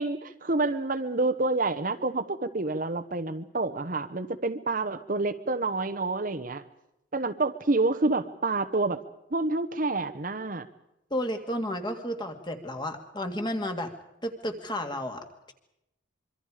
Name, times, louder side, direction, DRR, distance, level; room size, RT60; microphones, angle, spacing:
voice 1, 0.0-6.6 7.1-9.0 9.3-10.7, right 3 dB, 45° right, 9 dB, 1.0 m, -28 dB
voice 2, 11.1-13.9 14.2-15.5, equal, 20° left, 5 dB, 2.2 m, -32 dB
25.5 x 24.0 x 5.0 m, 0.85 s
head